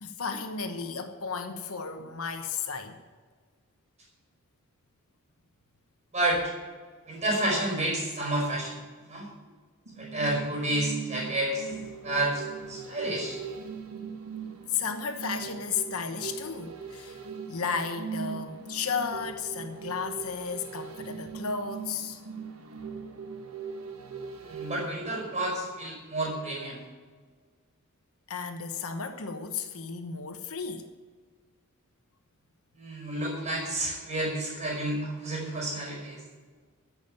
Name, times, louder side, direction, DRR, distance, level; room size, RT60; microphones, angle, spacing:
voice 1, 0.0-3.0 14.7-17.2 17.5-22.2 28.3-30.9, left 6 dB, 75° left, 1.1 m, -34 dB
voice 2, 7.1-9.3 10.0-11.7 12.0-13.4 24.4-26.8 32.8-36.2, right 1 dB, 30° right, 4.9 m, -30 dB
sound 1, 9.9-26.1 26.5-26.6, right 6 dB, 75° right, 1.6 m, -41 dB
14.5 x 6.2 x 9.0 m
head